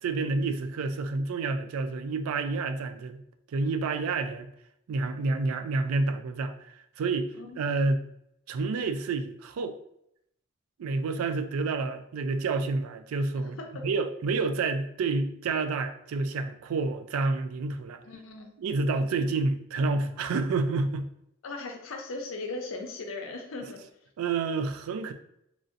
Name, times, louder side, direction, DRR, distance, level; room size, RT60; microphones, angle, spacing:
voice 1, 0.0-3.2 3.5-4.5 4.9-8.1 8.5-9.8 10.8-18.0 18.6-21.1 23.6-23.7 24.2-25.1, right 3 dB, 85° right, 8 dB, 0.3 m, -29 dB
voice 2, 13.4-13.8 18.0-18.6 21.4-23.8, left 3 dB, 70° left, 2 dB, 0.6 m, -38 dB
3.1 x 2.6 x 2.5 m, 0.75 s
head